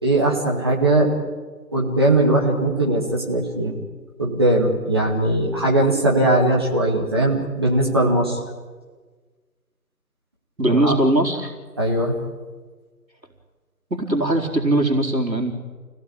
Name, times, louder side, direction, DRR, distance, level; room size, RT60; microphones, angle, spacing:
voice 1, 0.0-1.1 1.7-3.8 4.2-8.4 10.7-11.0 11.8-12.1, right 1 dB, 15° right, -2 dB, 2.2 m, -19 dB
voice 2, 10.6-11.5 13.9-15.5, right 1 dB, 90° right, 2 dB, 4.5 m, -20 dB
29.0 x 18.0 x 8.8 m, 1.4 s
figure-of-eight pair, 165°, 49 cm